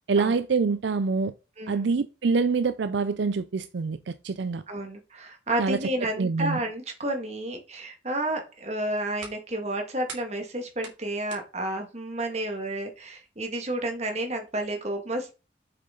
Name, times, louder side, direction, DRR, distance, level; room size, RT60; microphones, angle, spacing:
voice 1, 0.1-1.3 1.7-4.6 5.6-5.8 6.2-6.6, right 4 dB, 70° right, 0.5 m, -25 dB
voice 2, 1.6-1.9 4.7-15.3, right 1 dB, 35° right, 2.0 m, -31 dB
sound 1, 8.6-14.5, right 5 dB, 90° right, 3.1 m, -49 dB
7.8 x 6.5 x 3.9 m
head